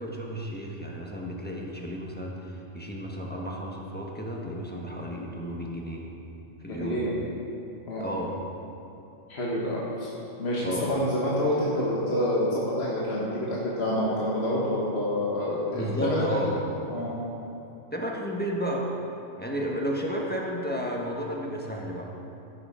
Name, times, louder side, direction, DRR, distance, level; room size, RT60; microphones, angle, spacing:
voice 1, 0.0-6.1 6.6-7.1 8.0-8.4 10.6-10.9 15.7-16.6 17.9-18.9 19.4-22.1, equal, 10° left, -2 dB, 1.2 m, -32 dB
voice 2, 6.7-7.1 7.9-8.0 9.3-10.1 10.4-16.2 16.9-17.1, left 1 dB, 55° left, -6 dB, 1.7 m, -27 dB
16.0 x 6.9 x 5.0 m, 2.9 s
omnidirectional pair, 1.3 m